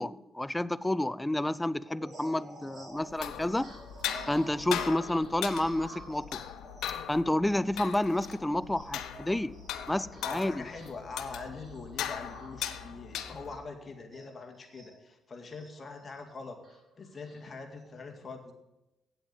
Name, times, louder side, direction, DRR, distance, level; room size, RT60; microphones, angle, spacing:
voice 1, 0.0-3.7 4.3-6.4 7.1-9.6 9.9-10.7, left 1 dB, 10° left, 18 dB, 0.4 m, -30 dB
sound 1, 1.8-15.0 15.5-17.9, right 2 dB, 40° right, 3.8 m, -52 dB
sound 2, 3.0-13.7, left 10 dB, 80° left, 0.8 m, -39 dB
voice 2, 10.2-18.5, left 4 dB, 35° left, 3 dB, 2.2 m, -43 dB
8.7 x 7.9 x 8.9 m, 0.96 s
cardioid pair, 90°, 0 cm